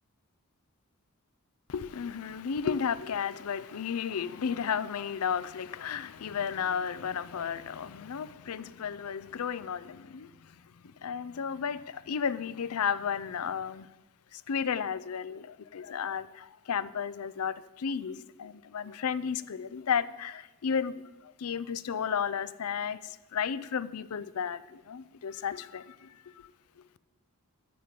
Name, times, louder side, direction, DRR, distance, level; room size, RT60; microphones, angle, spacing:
voice 1, 1.7-10.3 11.0-13.9 14.3-21.0 21.2-26.5, left 7 dB, 75° left, 0.5 m, -33 dB
13.0 x 5.2 x 8.0 m
head